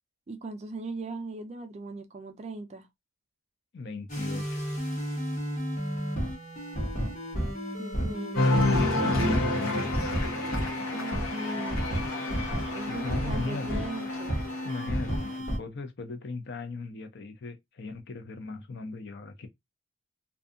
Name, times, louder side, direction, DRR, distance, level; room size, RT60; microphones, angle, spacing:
voice 1, 0.3-2.9 7.8-8.6 10.8-12.0 12.7-14.4, right 2 dB, 30° right, 0.3 m, -39 dB
voice 2, 3.7-4.7 9.1-9.9 12.9-13.9 14.6-19.5, left 3 dB, 50° left, 0.5 m, -38 dB
sound 1, 4.1-15.6, equal, 35° left, 0.9 m, -32 dB
Cheering, 8.3-15.4, left 2 dB, 80° left, 1.0 m, -30 dB
2.6 x 2.3 x 2.4 m
head